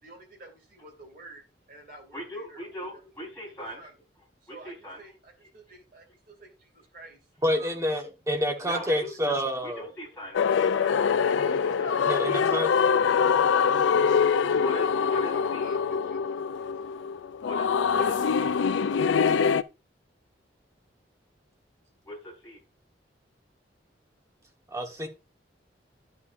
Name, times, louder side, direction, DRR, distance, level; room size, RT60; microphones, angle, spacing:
voice 1, 0.0-3.0 3.4-4.0 4.4-7.2 7.5-7.8 8.3-9.1 9.4-9.5 11.2-16.7 17.0-17.1, right 2 dB, 50° right, 2.4 m, -49 dB
voice 2, 2.1-3.8 4.5-5.0 8.7-9.1 9.6-11.0 14.6-15.8 17.4-17.7 17.9-18.5 22.1-22.6, left 1 dB, 10° left, 4.3 m, -40 dB
voice 3, 7.4-9.9 12.1-12.7 24.7-25.1, equal, 15° right, 1.3 m, -28 dB
sound 1, 10.3-19.6, left 6 dB, 85° left, 0.4 m, -24 dB
11.5 x 5.8 x 2.6 m
head